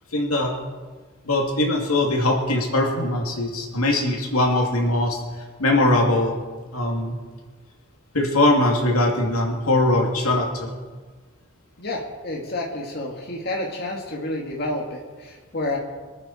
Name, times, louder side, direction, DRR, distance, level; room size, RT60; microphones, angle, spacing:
voice 1, 0.1-0.5 1.2-5.2 5.6-6.4 6.7-7.2 8.1-10.8, left 1 dB, 85° left, 0 dB, 2.6 m, -21 dB
voice 2, 11.8-15.8, left 2 dB, 45° left, -1 dB, 2.0 m, -29 dB
25.0 x 9.1 x 4.3 m, 1.4 s
head